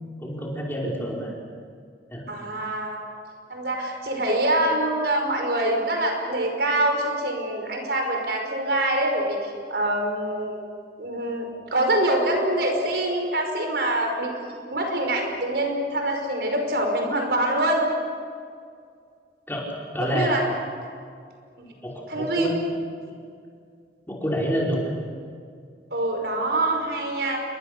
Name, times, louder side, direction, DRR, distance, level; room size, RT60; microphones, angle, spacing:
voice 1, 0.2-1.3 2.1-2.2 19.5-19.7 19.9-20.4 21.8-22.5 24.1-24.9, equal, 10° left, -3 dB, 5.3 m, -27 dB
voice 2, 2.3-3.0 3.5-10.6 11.0-14.3 14.7-17.8 20.0-20.5 21.6-21.7 22.1-22.5 25.9-27.4, right 1 dB, 65° right, 3 dB, 5.4 m, -25 dB
29.0 x 23.5 x 6.9 m, 2.2 s
head